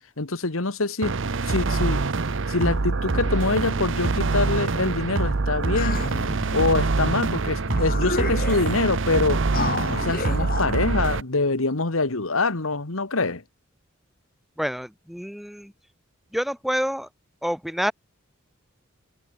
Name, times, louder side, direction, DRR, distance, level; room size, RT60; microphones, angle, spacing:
voice 1, 0.2-1.2 1.4-2.0 2.5-6.0 6.5-9.4 9.9-13.4, left 3 dB, 80° left, 1.9 m, -25 dB
sound 1, 1.0-11.2, right 3 dB, 60° right, 0.8 m, -25 dB
sound 2, 5.8-6.6 7.3-7.4 7.7-8.8 9.5-10.7, left 3 dB, 45° left, 3.2 m, -30 dB
voice 2, 14.6-15.7 16.3-17.1 17.4-17.9, equal, ahead, 2.8 m, -27 dB
head